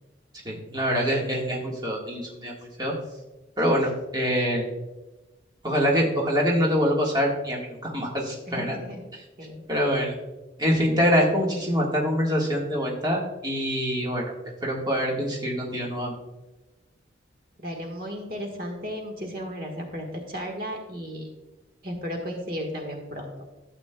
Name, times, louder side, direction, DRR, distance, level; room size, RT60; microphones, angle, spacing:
voice 1, 0.4-2.9 3.6-4.7 5.6-8.8 9.7-10.1 10.6-14.3 14.6-16.1, equal, 20° right, -2 dB, 1.5 m, -25 dB
voice 2, 8.5-9.1 9.4-9.7 17.6-21.3 21.8-23.3, equal, 50° right, 2 dB, 1.4 m, -34 dB
12.5 x 8.2 x 2.2 m, 1.1 s
head